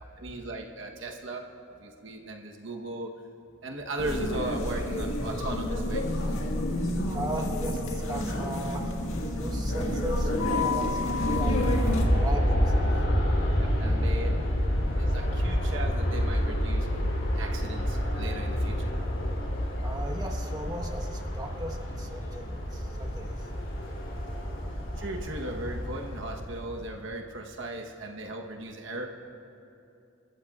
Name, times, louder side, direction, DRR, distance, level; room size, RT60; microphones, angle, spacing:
voice 1, 0.2-1.4 1.8-3.1 3.6-6.2 13.5-14.4 15.0-16.9 17.3-18.9 25.0-29.1, right 2 dB, 65° right, 2 dB, 1.1 m, -37 dB
sound 1, 4.0-12.0, left 1 dB, 80° left, 1.7 m, -29 dB
voice 2, 7.1-8.8 9.3-11.6 12.1-12.9 19.8-23.3, right 1 dB, 20° right, 1 dB, 1.2 m, -37 dB
Aircraft, 10.9-27.0, equal, 65° left, 3.3 m, -28 dB
29.0 x 14.0 x 2.4 m, 2.8 s
head